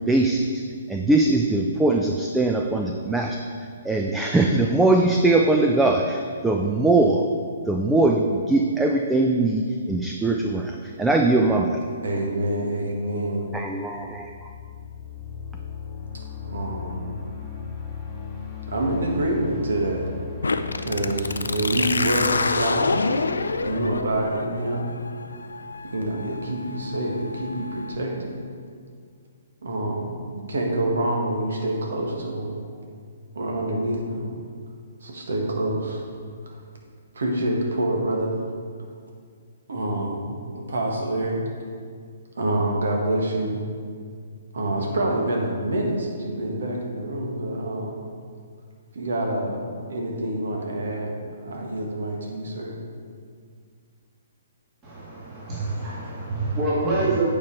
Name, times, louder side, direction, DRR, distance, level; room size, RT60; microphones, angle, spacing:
voice 1, 0.1-0.5 0.9-3.4 3.8-7.2 7.7-11.8 13.5-14.3, right 2 dB, 5° right, 1 dB, 0.4 m, -21 dB
voice 2, 11.9-13.5 16.1-17.1 18.7-20.1 20.8-23.0 23.6-24.9 25.8-28.4 29.6-32.6 33.3-34.3 35.0-36.1 36.4-36.6 37.1-38.4 39.7-41.4 42.4-43.6 44.5-48.0 48.9-52.8, right 1 dB, 70° right, 0 dB, 1.5 m, -27 dB
sound 1, 13.9-24.6, left 6 dB, 15° left, 2.0 m, -37 dB
sound 2, 20.4-28.0, left 3 dB, 80° left, 0.4 m, -28 dB
voice 3, 54.8-57.3, right 2 dB, 25° right, -8 dB, 2.0 m, -26 dB
8.5 x 4.7 x 4.5 m, 2.1 s
figure-of-eight pair, 130°, 0 cm